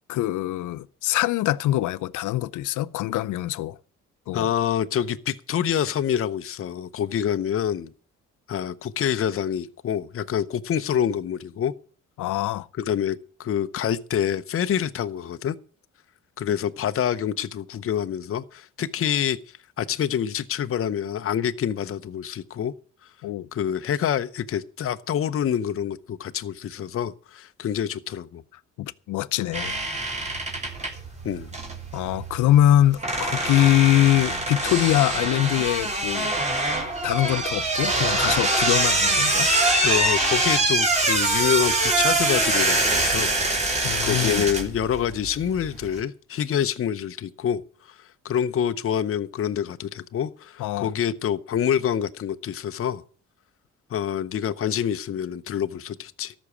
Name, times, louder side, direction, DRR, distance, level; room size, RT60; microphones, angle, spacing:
voice 1, 0.1-3.8 4.3-4.5 12.2-12.7 23.2-23.5 28.8-29.8 31.9-36.3 37.0-39.5 43.8-44.4 50.6-50.9, left 13 dB, 80° left, 0.6 m, -23 dB
voice 2, 4.3-7.9 8.5-11.7 12.8-15.6 16.4-19.4 19.8-22.7 23.5-28.4 31.2-31.5 39.8-43.3 44.0-47.6 48.2-53.0 53.9-56.3, left 9 dB, 45° left, 0.8 m, -26 dB
sound 1, 29.5-46.0, right 2 dB, 20° right, 3.3 m, -24 dB
13.5 x 6.2 x 8.3 m
cardioid pair, 90°, 30 cm